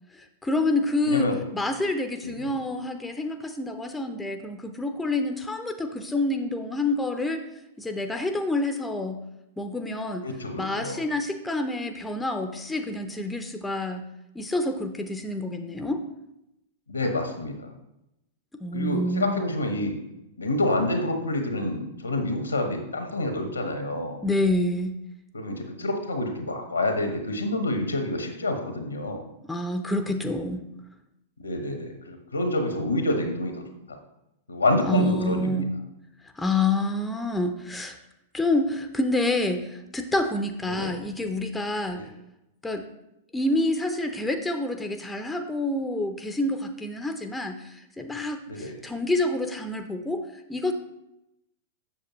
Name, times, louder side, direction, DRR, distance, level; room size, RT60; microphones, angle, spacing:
voice 1, 0.1-7.4 7.8-9.2 9.6-10.3 10.6-14.1 14.3-16.0 18.6-19.4 24.2-25.0 29.5-30.6 34.8-35.7 36.4-38.0 38.3-42.1 42.6-42.8 43.3-50.2 50.5-50.7, left 2 dB, 10° left, 6 dB, 0.6 m, -28 dB
voice 2, 1.1-1.4 2.2-2.5 10.2-11.0 16.9-17.7 18.7-19.9 20.4-24.2 25.3-29.2 31.4-34.0 34.5-35.7 40.7-41.0 42.0-42.1 48.5-48.8, left 1 dB, 90° left, 4 dB, 1.2 m, -28 dB
7.4 x 6.5 x 3.1 m, 0.87 s
figure-of-eight pair, 100°, 0 cm